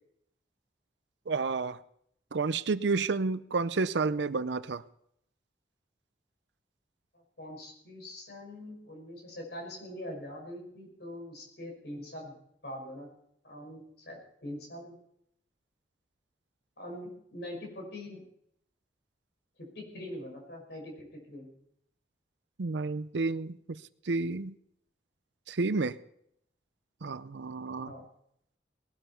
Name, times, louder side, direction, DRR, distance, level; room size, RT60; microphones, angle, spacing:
voice 1, 1.3-1.8 2.3-4.8 22.6-23.8 24.1-24.5 25.5-25.9 27.0-27.9, right 4 dB, 80° right, 14 dB, 0.6 m, -30 dB
voice 2, 7.4-12.3 12.6-13.1 13.4-15.0 16.8-18.2 19.6-21.5 27.8-28.1, left 1 dB, 65° left, 1 dB, 6.0 m, -43 dB
19.5 x 12.5 x 4.5 m, 0.71 s
head